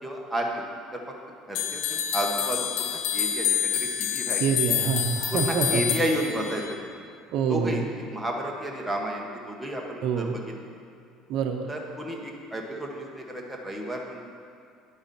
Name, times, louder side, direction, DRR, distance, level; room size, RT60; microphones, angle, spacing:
voice 1, 0.0-0.6 0.9-1.0 1.5-4.4 5.3-6.8 7.5-7.9 8.1-10.5 11.7-14.3, right 1 dB, 5° right, -1 dB, 1.4 m, -32 dB
sound 1, 1.5-6.8, left 9 dB, 75° left, 0.7 m, -28 dB
voice 2, 4.4-5.8 7.3-7.9 10.0-10.4 11.3-11.7, right 6 dB, 65° right, 4 dB, 0.8 m, -26 dB
11.0 x 8.8 x 4.3 m, 2.5 s
cardioid pair, 125°, 0 cm